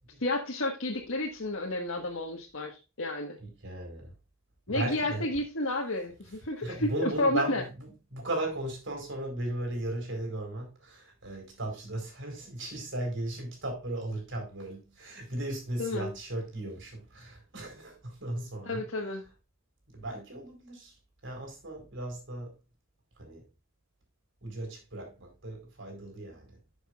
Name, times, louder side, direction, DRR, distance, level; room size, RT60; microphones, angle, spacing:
voice 1, 0.2-3.4 4.7-7.6 15.8-16.1 18.6-19.2, left 2 dB, 75° left, 1.6 m, -31 dB
voice 2, 3.4-4.1 4.7-5.3 6.6-18.8 19.9-20.9 21.2-22.5 23.2-23.4 24.4-26.6, right 1 dB, 65° right, 4.5 m, -36 dB
11.5 x 7.1 x 2.5 m
head